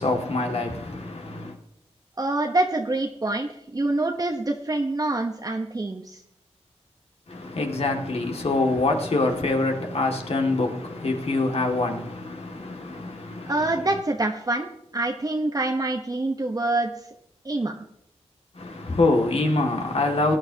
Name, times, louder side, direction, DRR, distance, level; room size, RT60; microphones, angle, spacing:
voice 1, 0.0-1.6 7.3-13.8 18.5-20.4, left 2 dB, 60° left, 2.1 m, -25 dB
voice 2, 2.2-6.2 13.5-14.7 14.9-16.9 17.4-17.8, right 2 dB, 30° right, 1.0 m, -26 dB
18.5 x 9.6 x 2.9 m
cardioid pair, 55°, 11 cm